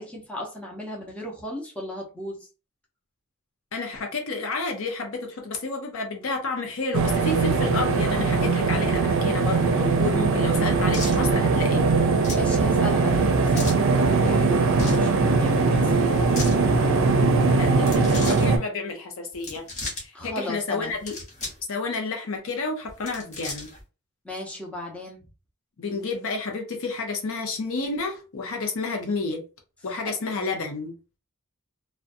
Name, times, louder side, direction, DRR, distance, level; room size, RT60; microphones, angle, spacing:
voice 1, 0.0-2.4 12.3-16.8 20.1-21.0 24.2-25.2 29.9-30.0, left 1 dB, 5° left, 0.7 m, -36 dB
voice 2, 3.7-11.9 17.5-19.6 20.0-21.1 21.7-23.7 25.8-29.4 29.8-30.9, left 3 dB, 65° left, 0.6 m, -30 dB
sound 1, 6.9-18.6, right 4 dB, 65° right, 0.5 m, -21 dB
sound 2, 10.9-11.2 12.2-12.5 13.5-13.8 14.7-15.1 16.2-16.6 17.8-18.5 19.3-20.0 20.9-21.6 21.9-22.0 22.9-23.8, left 2 dB, 35° left, 1.2 m, -35 dB
2.5 x 2.2 x 2.5 m
head